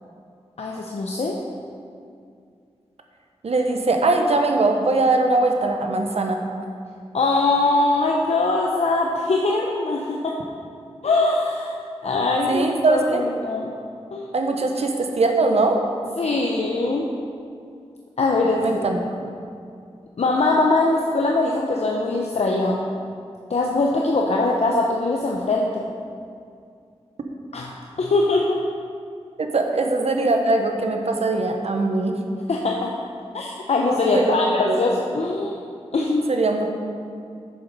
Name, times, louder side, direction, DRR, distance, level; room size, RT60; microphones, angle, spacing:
voice 1, 0.6-1.4 7.1-10.4 11.0-11.7 12.0-13.7 14.1-14.3 16.2-17.1 18.2-18.6 20.2-22.8 23.5-25.8 27.5-27.7 28.0-28.6 32.5-32.9 33.3-35.5 35.9-36.3, left 2 dB, 75° left, -1 dB, 0.7 m, -22 dB
voice 2, 3.4-6.4 12.5-13.2 14.3-15.8 18.6-19.0 29.4-32.2 34.1-34.4 34.7-34.8 36.3-36.7, right 2 dB, 70° right, 3 dB, 1.0 m, -21 dB
8.7 x 6.8 x 5.4 m, 2.3 s
wide cardioid pair, 95°, 11 cm